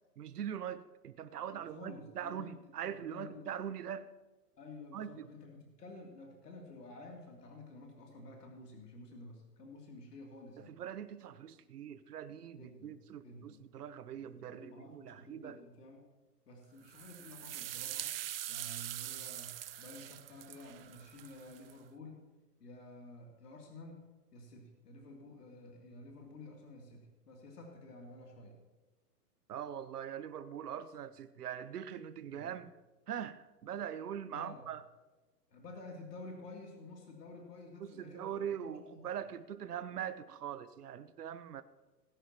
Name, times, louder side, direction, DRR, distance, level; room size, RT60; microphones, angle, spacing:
voice 1, 0.2-4.1 4.9-5.3 10.6-15.6 29.5-32.8 33.1-34.8 37.8-41.6, right 9 dB, 70° right, 13 dB, 1.1 m, -42 dB
voice 2, 1.5-2.6 2.8-3.5 4.6-10.8 12.6-13.6 14.1-16.0 16.5-18.2 18.5-22.2 22.6-28.6 32.2-32.5 34.3-34.7 35.5-39.1, left 2 dB, 75° left, 0 dB, 3.1 m, -51 dB
sound 1, 16.9-21.7, right 12 dB, 40° right, 0.5 m, -43 dB
20.0 x 10.5 x 3.0 m, 1.2 s
hypercardioid pair, 130°, 48 cm